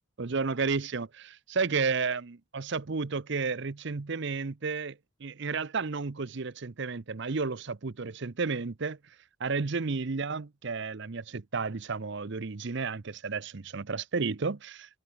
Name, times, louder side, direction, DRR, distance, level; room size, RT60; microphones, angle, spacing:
voice 1, 0.2-9.0 9.4-15.0, right 4 dB, 55° right, 0.7 m, -32 dB
head